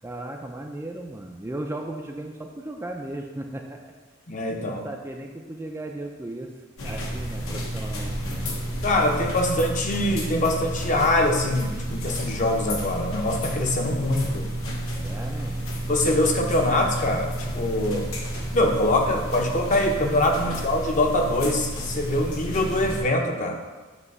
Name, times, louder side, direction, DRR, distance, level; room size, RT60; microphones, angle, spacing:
voice 1, 0.0-3.8 4.6-6.5 6.8-8.6 14.9-15.6 20.3-20.6, right 1 dB, 10° right, 2 dB, 0.4 m, -36 dB
voice 2, 4.3-4.8 8.8-14.5 15.9-18.1 18.5-23.6, left 1 dB, 35° left, 2 dB, 0.7 m, -23 dB
sound 1, 6.8-23.0, equal, 75° left, 1.1 m, -31 dB
8.2 x 2.9 x 5.3 m, 1.3 s
head